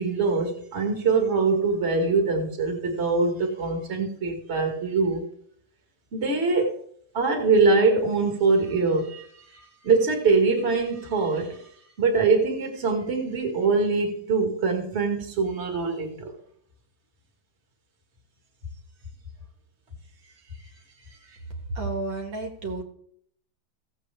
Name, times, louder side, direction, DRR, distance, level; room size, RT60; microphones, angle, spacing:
voice 1, 0.0-5.2 6.1-6.7 7.1-9.3 9.5-11.6 12.0-16.3, right 4 dB, 30° right, 2.1 m, -23 dB
voice 2, 21.7-22.8, right 2 dB, 65° right, 2.3 m, -31 dB
16.0 x 7.9 x 3.4 m
omnidirectional pair, 2.3 m